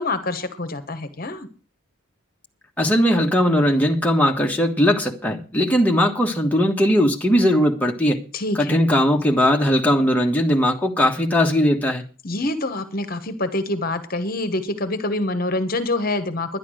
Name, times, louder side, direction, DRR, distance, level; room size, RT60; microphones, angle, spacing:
voice 1, 0.0-1.5 8.3-8.8 12.2-16.6, left 2 dB, 45° left, 1.2 m, -26 dB
voice 2, 2.8-8.2 8.5-12.0, equal, 5° left, 1.4 m, -19 dB
11.0 x 11.0 x 6.3 m
head